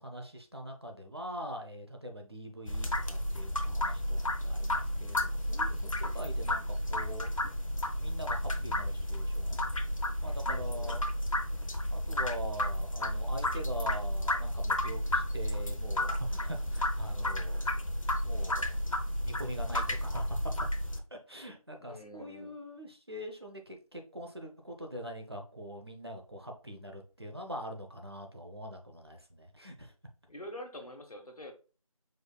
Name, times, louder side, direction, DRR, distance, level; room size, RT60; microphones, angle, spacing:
voice 1, 0.0-7.3 8.0-9.6 10.2-11.0 11.9-17.7 18.2-18.7 19.2-20.5 21.1-29.9, equal, 45° right, 3 dB, 0.8 m, -43 dB
sound 1, 2.7-21.0, left 1 dB, 60° left, 0.8 m, -32 dB
voice 2, 10.4-11.0 21.8-22.6 30.3-31.5, left 1 dB, 80° left, 4 dB, 1.3 m, -46 dB
5.0 x 4.0 x 2.3 m, 0.35 s
figure-of-eight pair, 180°, 19 cm